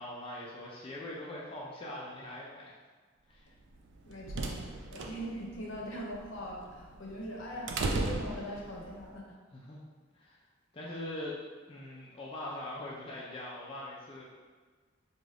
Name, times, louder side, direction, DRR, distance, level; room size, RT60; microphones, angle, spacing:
voice 1, 0.0-2.8 3.3-3.5 9.5-9.8 10.1-10.4 10.7-11.4 11.7-14.2, left 1 dB, 25° left, -5 dB, 0.4 m, -42 dB
sound 1, 3.8-9.0, right 2 dB, 60° right, 0.3 m, -37 dB
voice 2, 4.0-9.4, equal, 70° left, -2 dB, 0.6 m, -41 dB
2.5 x 2.3 x 3.2 m, 1.4 s
head